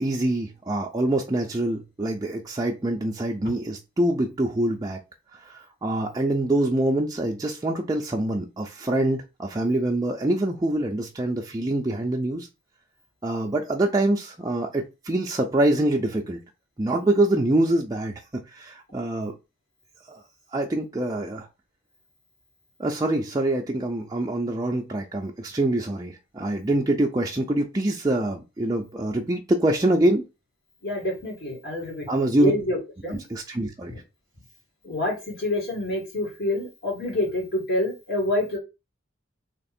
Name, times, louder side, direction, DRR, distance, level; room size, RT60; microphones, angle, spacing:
voice 1, 0.0-5.0 5.3-12.5 13.2-16.4 16.8-18.1 18.5-19.3 20.1-20.2 20.5-21.5 22.8-30.2 32.1-32.5 33.1-33.9, right 1 dB, 20° right, 0.4 m, -25 dB
voice 2, 30.8-33.2 34.8-38.6, left 1 dB, 50° left, 2.2 m, -27 dB
3.3 x 2.9 x 4.2 m
head